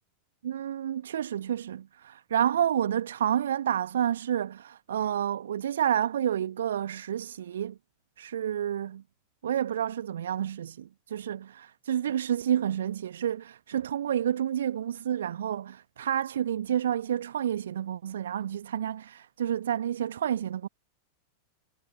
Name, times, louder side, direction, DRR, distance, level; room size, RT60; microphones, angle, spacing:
voice 1, 0.4-7.7 8.2-9.0 9.4-20.7, right 10 dB, 65° right, 1.6 m, -29 dB
figure-of-eight pair, 90°, 0 cm